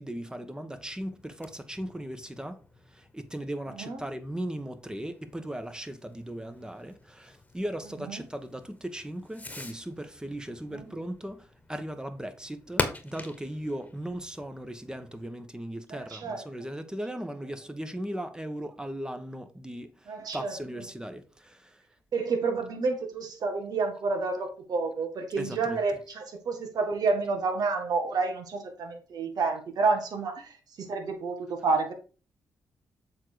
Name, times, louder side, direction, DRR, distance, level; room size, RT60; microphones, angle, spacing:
voice 1, 0.0-2.6 2.9-21.8 25.4-25.8, right 1 dB, 10° right, 1.2 m, -38 dB
Fireworks, 0.7-15.3, left 2 dB, 20° left, 1.5 m, -42 dB
voice 2, 3.7-4.0 8.1-8.3 10.7-10.8 15.9-16.4 20.1-20.5 22.1-31.9, right 4 dB, 70° right, 1.7 m, -29 dB
7.3 x 3.9 x 4.6 m
supercardioid pair, 55°, 7 cm